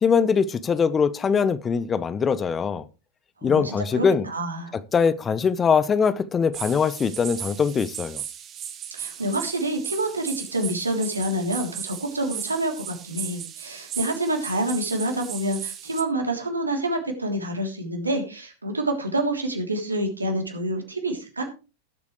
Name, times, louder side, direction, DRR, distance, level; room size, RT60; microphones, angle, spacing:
voice 1, 0.0-2.9 3.4-4.3 4.9-8.2, left 6 dB, 20° left, 0.6 m, -22 dB
voice 2, 3.4-4.7 8.9-21.5, right 1 dB, 80° right, 3.2 m, -27 dB
sound 1, 6.5-16.0, right 9 dB, 30° right, 1.9 m, -36 dB
19.0 x 8.2 x 3.2 m
figure-of-eight pair, 90°, 0 cm